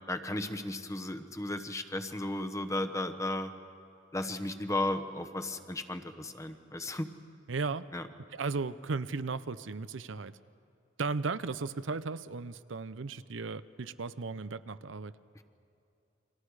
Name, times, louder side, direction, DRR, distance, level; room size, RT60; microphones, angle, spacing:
voice 1, 0.1-3.5 4.1-7.1 7.9-8.1, left 1 dB, 15° left, 7 dB, 1.0 m, -35 dB
voice 2, 7.5-7.9 8.3-10.3 11.0-15.1, right 4 dB, 90° right, 14 dB, 0.7 m, -35 dB
30.0 x 24.0 x 4.9 m, 2.7 s
head